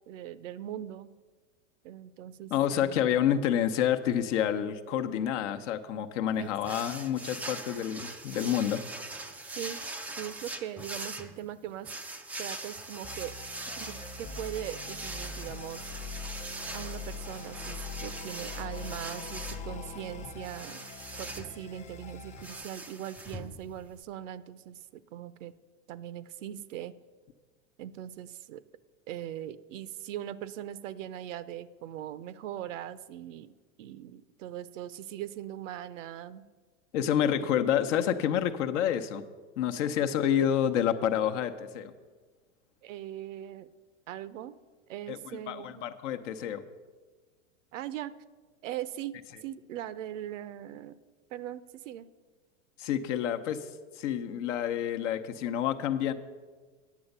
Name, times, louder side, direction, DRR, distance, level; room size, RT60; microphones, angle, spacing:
voice 1, 0.1-1.1 1.8-3.0 6.4-6.8 9.6-9.8 10.2-11.9 12.4-13.4 13.8-15.8 16.7-20.8 21.2-25.5 25.9-26.9 27.8-28.6 29.1-36.4 37.4-37.5 38.3-38.4 42.8-43.7 44.1-44.6 44.9-45.9 47.7-48.1 48.6-50.9 51.3-52.1, right 11 dB, 70° right, 16 dB, 0.7 m, -40 dB
voice 2, 2.5-8.8 36.9-39.2 39.6-41.9 45.1-46.6 52.8-53.7 53.9-56.1, left 9 dB, 65° left, 9 dB, 0.9 m, -28 dB
sound 1, 6.6-24.0, right 2 dB, 5° right, 0.3 m, -42 dB
sound 2, 13.0-22.6, left 4 dB, 20° left, 0.7 m, -43 dB
9.3 x 7.1 x 6.6 m, 1.4 s
hypercardioid pair, 105°, 40 cm